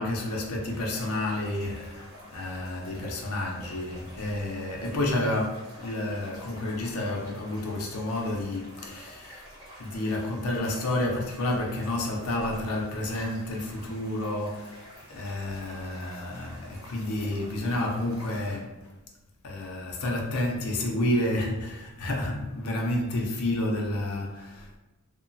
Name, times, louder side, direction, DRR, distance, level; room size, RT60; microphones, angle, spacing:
voice 1, 0.0-9.4 9.8-18.8 19.4-24.8, left 1 dB, 75° left, 0.5 m, -30 dB
sound 1, 0.6-18.6, equal, 20° right, 1.1 m, -49 dB
2.8 x 2.0 x 2.6 m
head